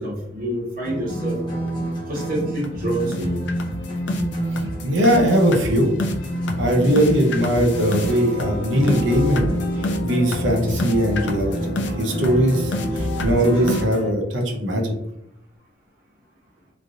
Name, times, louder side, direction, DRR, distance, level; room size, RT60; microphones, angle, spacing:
voice 1, 0.0-1.4 2.1-3.4, right 1 dB, 45° right, -6 dB, 1.1 m, -27 dB
sound 1, 0.8-14.0, right 1 dB, 25° left, 0.7 m, -29 dB
sound 2, 1.7-1.8 2.2-2.3 2.6-2.8 3.1-14.1, left 1 dB, 65° left, 0.4 m, -29 dB
voice 2, 4.6-5.9 6.6-9.6 10.0-14.9, equal, 75° right, 2 dB, 0.6 m, -20 dB
3.2 x 2.5 x 2.6 m, 0.83 s
head